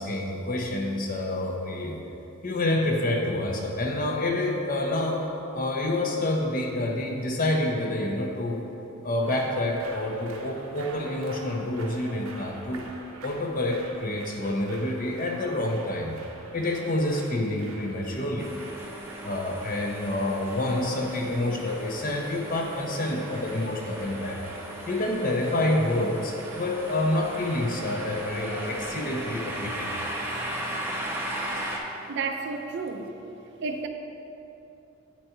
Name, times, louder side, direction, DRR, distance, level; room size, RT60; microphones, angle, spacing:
voice 1, 0.0-2.0 2.4-5.3 5.5-8.6 9.0-12.9 13.2-16.2 16.5-18.5 19.2-24.4 24.9-29.9 31.0-31.1, left 1 dB, 40° left, 1 dB, 0.7 m, -28 dB
sound 1, 9.2-29.1, right 2 dB, 85° right, 0.8 m, -46 dB
sound 2, 18.4-31.8, right 1 dB, 10° right, 0.6 m, -37 dB
voice 2, 32.1-33.1 33.6-33.9, right 4 dB, 55° right, 5 dB, 0.5 m, -31 dB
8.8 x 4.2 x 4.4 m, 2.9 s
head